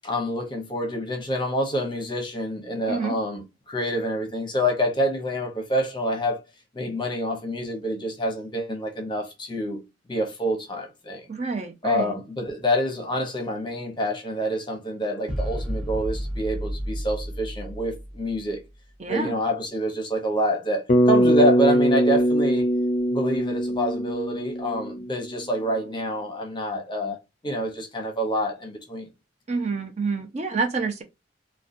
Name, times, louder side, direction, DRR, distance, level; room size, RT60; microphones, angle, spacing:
voice 1, 0.0-6.4 6.7-9.8 10.1-11.2 11.8-18.6 19.1-22.7 23.1-27.2 27.4-29.1, equal, 25° left, 0.8 m, -27 dB
voice 2, 11.3-12.1 19.0-19.3 29.5-31.0, right 4 dB, 35° right, 0.5 m, -28 dB
sound 1, 15.3-18.7, equal, 5° right, 0.7 m, -32 dB
Bass guitar, 20.9-25.3, equal, 45° left, 0.4 m, -21 dB
3.9 x 2.2 x 2.5 m
head